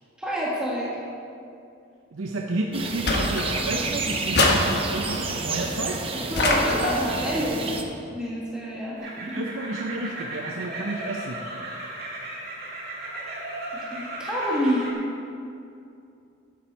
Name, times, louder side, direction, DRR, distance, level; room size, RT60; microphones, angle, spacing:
voice 1, 0.2-1.0 6.1-7.8 8.1-9.4 13.7-14.9, equal, 5° right, -6 dB, 1.6 m, -28 dB
voice 2, 2.1-6.1 9.2-11.4, right 2 dB, 85° right, 1 dB, 0.7 m, -31 dB
sound 1, 2.7-7.8, right 3 dB, 25° right, 0.7 m, -30 dB
sound 2, 3.1-3.9 4.3-5.2 6.4-7.2, left 2 dB, 50° left, 1.2 m, -24 dB
sound 3, 9.0-14.9, right 1 dB, 45° right, 2.2 m, -36 dB
11.5 x 8.6 x 4.6 m, 2.5 s
head